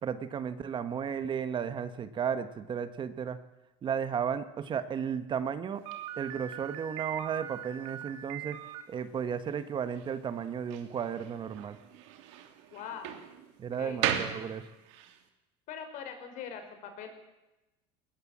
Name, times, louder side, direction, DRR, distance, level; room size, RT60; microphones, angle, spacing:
voice 1, 0.0-3.4 3.8-5.8 6.2-8.6 8.9-11.8 13.6-14.6, right 7 dB, 30° right, 11 dB, 1.4 m, -34 dB
Slam, 5.8-15.2, right 10 dB, 80° right, 3.0 m, -39 dB
voice 2, 12.7-13.2 13.8-14.0 15.7-17.1, left 7 dB, 55° left, 6 dB, 5.6 m, -42 dB
21.5 x 20.0 x 7.5 m, 1.0 s
supercardioid pair, 125°, 15 cm